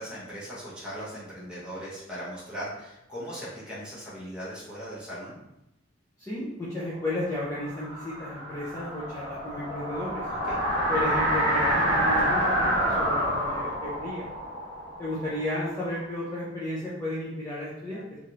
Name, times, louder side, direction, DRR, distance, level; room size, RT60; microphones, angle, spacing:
voice 1, 0.0-5.4 10.3-10.6, equal, 5° right, -8 dB, 1.0 m, -39 dB
voice 2, 6.2-10.3 10.9-14.3 15.0-18.2, left 1 dB, 15° left, -9 dB, 0.5 m, -33 dB
sound 1, 7.3-16.0, equal, 25° right, 0.8 m, -28 dB
3.1 x 2.4 x 2.8 m, 0.88 s
head